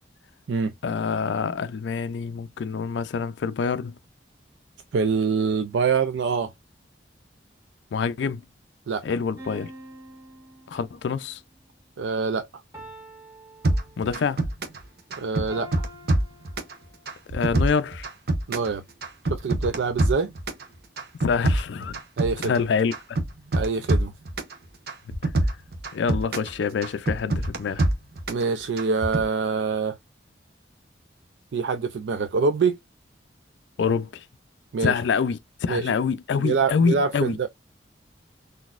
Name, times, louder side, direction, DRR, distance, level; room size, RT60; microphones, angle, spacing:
voice 1, 0.8-3.9 7.9-8.4 9.0-9.7 10.7-11.4 14.0-14.4 17.3-18.1 21.2-22.0 22.4-22.9 25.9-27.8 33.8-34.2 34.8-37.4, left 5 dB, 75° left, 0.4 m, -26 dB
voice 2, 4.9-6.5 8.9-9.0 12.0-12.5 15.2-15.7 18.5-18.8 19.3-20.3 22.2-22.5 23.5-24.1 28.3-30.0 31.5-32.8 34.7-34.9 35.7-35.9 36.4-37.5, right 5 dB, 75° right, 0.4 m, -25 dB
sound 1, 9.4-11.2 12.7-14.4 15.5-17.2, equal, 15° right, 1.4 m, -45 dB
sound 2, 13.6-14.8 15.1-16.7 17.1-18.7 19.0-20.6 21.0-22.6 22.9-24.5 24.9-26.5 26.8-28.4 28.8-29.2, right 1 dB, 55° right, 0.8 m, -25 dB
4.0 x 2.6 x 2.4 m
head